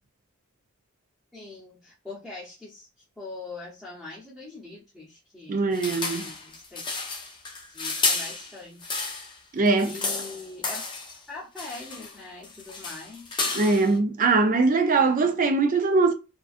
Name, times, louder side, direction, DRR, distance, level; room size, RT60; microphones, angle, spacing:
voice 1, 1.3-2.9 3.2-5.7 6.2-6.8 7.7-8.9 9.8-10.8 11.3-13.4, left 3 dB, ahead, 0.8 m, -42 dB
voice 2, 5.5-6.3 9.5-9.9 13.5-16.1, right 3 dB, 40° right, 0.4 m, -21 dB
sound 1, 5.7-9.4 9.7-11.2 11.6-12.2 12.4-13.9, left 3 dB, 20° left, 0.4 m, -31 dB
2.4 x 2.2 x 2.4 m
head